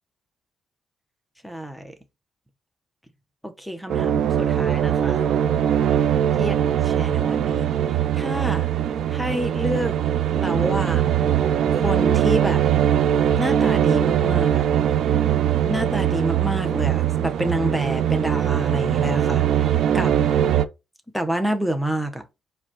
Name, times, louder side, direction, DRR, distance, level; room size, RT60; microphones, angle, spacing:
voice 1, 1.4-1.9 3.4-5.3 6.4-6.5 6.8-8.7 9.1-10.0 10.3-11.3 11.7-12.6 13.4-14.6 15.7-20.1 21.1-22.2, right 1 dB, ahead, 0.7 m, -28 dB
sound 1, 3.9-20.7, right 10 dB, 70° right, 0.4 m, -21 dB
4.8 x 2.3 x 4.3 m
cardioid pair, 90°, 0 cm